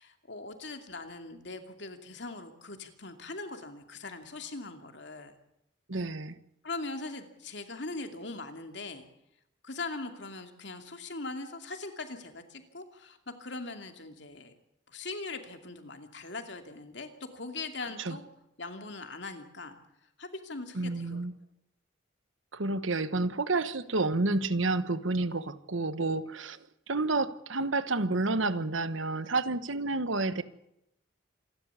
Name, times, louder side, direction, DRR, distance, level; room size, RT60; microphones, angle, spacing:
voice 1, 0.0-5.4 6.6-9.1 9.6-14.5 14.9-18.3 18.6-19.8 20.2-21.2, left 3 dB, 65° left, 6 dB, 2.6 m, -41 dB
voice 2, 5.9-6.4 18.0-18.2 20.7-21.3 22.5-26.6 26.9-30.4, right 3 dB, 80° right, 14 dB, 1.2 m, -30 dB
27.0 x 12.5 x 8.3 m, 0.81 s
head